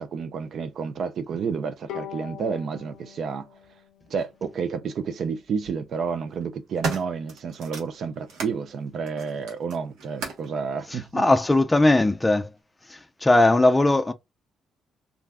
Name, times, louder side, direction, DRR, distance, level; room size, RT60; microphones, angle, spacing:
voice 1, 0.0-3.5 4.1-11.2, right 6 dB, 60° right, 0.4 m, -30 dB
Bowed string instrument, 1.9-5.2, left 10 dB, 90° left, 0.3 m, -43 dB
sound 1, 4.2-4.3 5.4-5.7 6.3-8.6 9.0-10.5 11.4-11.5, right 3 dB, 85° right, 1.0 m, -35 dB
voice 2, 10.9-12.5 12.9-14.1, left 2 dB, 15° left, 0.4 m, -19 dB
2.4 x 2.2 x 3.3 m
cardioid pair, 90°, 0 cm